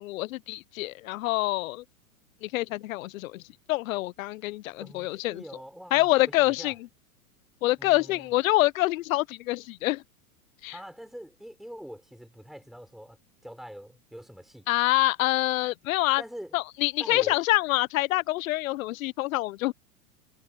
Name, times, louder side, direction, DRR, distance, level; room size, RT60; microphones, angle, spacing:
voice 1, 0.0-1.8 2.4-3.4 3.7-5.4 5.9-6.7 7.6-10.0 10.6-10.8 14.7-16.2 16.5-19.7, left 18 dB, 60° left, 1.0 m, -26 dB
voice 2, 4.8-6.7 7.8-8.3 10.7-13.2 13.4-14.7 16.2-16.5 17.0-17.4, equal, ahead, 5.8 m, -44 dB
hypercardioid pair, 105°, 46 cm